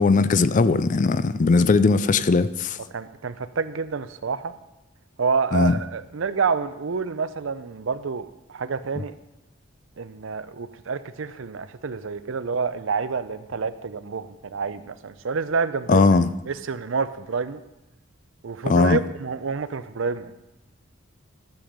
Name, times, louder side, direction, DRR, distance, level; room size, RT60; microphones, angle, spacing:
voice 1, 0.0-2.8 5.5-5.7 15.9-16.3 18.6-19.0, left 4 dB, 40° left, 0.4 m, -19 dB
voice 2, 2.9-4.6 5.2-9.1 10.0-16.1 16.5-17.6 18.4-20.3, right 5 dB, 70° right, 0.6 m, -28 dB
13.0 x 7.1 x 5.1 m
head